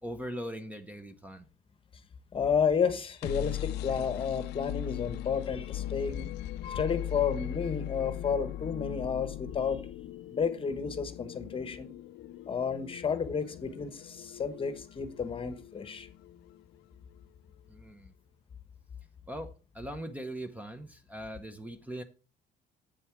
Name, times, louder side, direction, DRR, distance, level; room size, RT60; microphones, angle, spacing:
voice 1, 0.0-1.5 17.7-18.1 19.3-22.0, right 1 dB, 10° right, 1.0 m, -40 dB
voice 2, 2.3-6.3 6.6-9.8 10.3-11.9 12.5-16.1, left 6 dB, 30° left, 1.1 m, -31 dB
sound 1, 2.9-16.8, left 13 dB, 85° left, 0.5 m, -40 dB
8.3 x 7.1 x 4.6 m
cardioid pair, 110°, 17 cm